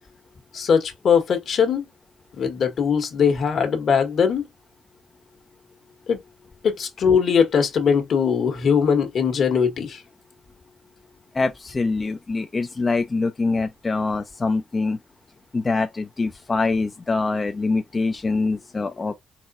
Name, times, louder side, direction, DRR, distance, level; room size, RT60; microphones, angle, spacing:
voice 1, 0.5-1.9 2.4-4.5 6.1-6.2 6.6-10.0, left 6 dB, 60° left, 1.5 m, -20 dB
voice 2, 11.3-15.0 15.5-19.1, left 3 dB, 30° left, 0.5 m, -24 dB
4.1 x 3.8 x 2.6 m
cardioid pair, 90°, 0 cm